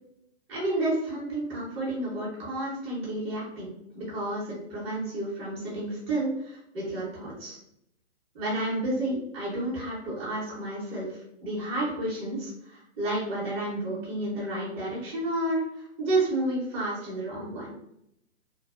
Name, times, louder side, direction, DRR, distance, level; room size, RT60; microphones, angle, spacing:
voice 1, 0.5-3.7 3.9-7.6 8.3-11.1 11.4-17.7, right 1 dB, 15° right, -7 dB, 0.8 m, -31 dB
2.5 x 2.1 x 2.4 m, 0.78 s
hypercardioid pair, 135°, 37 cm